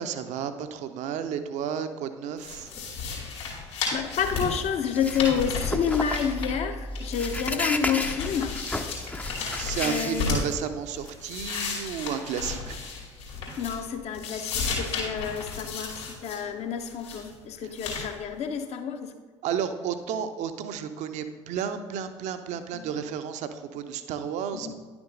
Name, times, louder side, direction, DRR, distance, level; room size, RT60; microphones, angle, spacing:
voice 1, 0.0-2.7 9.5-12.8 17.6-17.8 19.4-24.7, right 8 dB, 50° right, 9 dB, 0.7 m, -32 dB
sound 1, 2.4-6.7 6.9-10.5 10.9-13.9 14.1-16.4 16.8-17.3 17.8-18.1, left 5 dB, 70° left, 2.5 m, -34 dB
voice 2, 3.9-8.5 9.8-10.4 13.6-19.1 22.7-22.9 24.5-24.7, left 7 dB, 45° left, 7 dB, 0.8 m, -29 dB
sound 2, 4.2-10.7, left 2 dB, 10° left, 0.6 m, -33 dB
10.5 x 6.0 x 3.8 m, 1.5 s
figure-of-eight pair, 60°, 15 cm